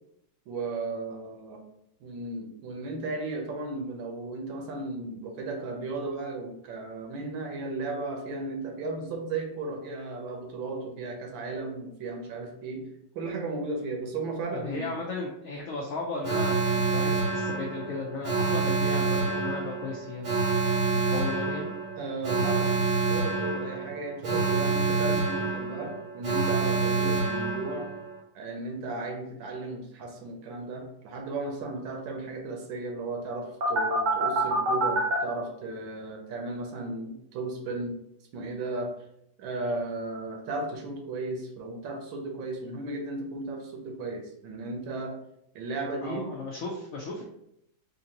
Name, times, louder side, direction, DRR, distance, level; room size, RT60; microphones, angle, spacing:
voice 1, 0.5-1.6 2.0-12.8 13.1-14.9 22.0-27.9 28.3-37.9 38.3-38.9 39.4-45.1 45.5-46.3, right 2 dB, 80° right, 2 dB, 1.5 m, -35 dB
voice 2, 14.5-20.3 21.1-21.7 46.0-47.2, left 3 dB, 80° left, -1 dB, 0.7 m, -35 dB
Alarm, 16.2-28.1 33.6-35.2, right 3 dB, 60° right, 0.8 m, -27 dB
4.3 x 2.6 x 2.8 m, 0.77 s
omnidirectional pair, 2.1 m